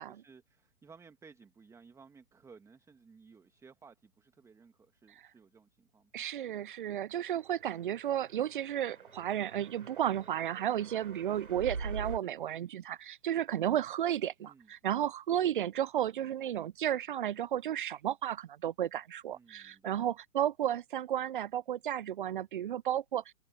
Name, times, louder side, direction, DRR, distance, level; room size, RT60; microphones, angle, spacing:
voice 1, 0.0-6.1 14.4-15.0 19.3-20.0, right 5 dB, 5° right, 1.8 m, -58 dB
voice 2, 6.1-23.3, right 11 dB, 40° right, 0.5 m, -33 dB
sound 1, 7.8-12.2, right 4 dB, 85° right, 4.3 m, -44 dB
open air
figure-of-eight pair, 130°, 42 cm